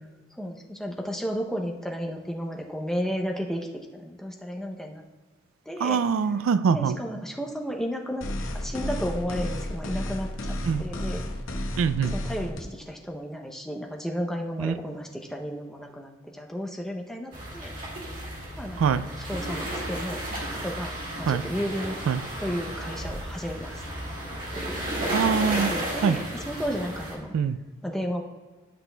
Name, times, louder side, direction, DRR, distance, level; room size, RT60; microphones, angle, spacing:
voice 1, 0.3-3.7 3.9-5.0 5.7-6.0 6.7-8.2 8.5-11.2 12.1-17.7 18.6-20.2 20.6-20.9 21.2-21.9 22.4-23.8 24.5-24.8 25.7-27.3 27.8-28.2, equal, ahead, 1 dB, 0.6 m, -33 dB
voice 2, 5.8-7.0 10.6-10.8 11.8-12.1 14.6-14.7 18.8-19.0 21.3-21.4 22.1-22.2 25.1-25.7 26.0-26.2 27.3-27.6, right 6 dB, 70° right, 14 dB, 0.3 m, -23 dB
sound 1, 8.2-12.6, left 1 dB, 75° left, 0.8 m, -32 dB
sound 2, 17.3-27.1, right 1 dB, 40° right, 2.1 m, -33 dB
12.0 x 6.0 x 2.2 m, 1.3 s
head